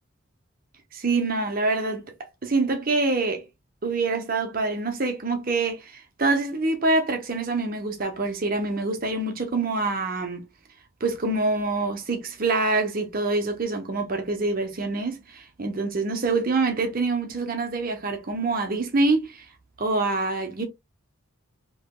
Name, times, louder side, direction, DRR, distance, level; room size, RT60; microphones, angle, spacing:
voice 1, 0.9-2.1 2.4-3.4 3.8-10.4 11.0-19.5 19.8-20.7, right 3 dB, 40° right, 0.8 m, -25 dB
3.3 x 3.0 x 2.2 m
head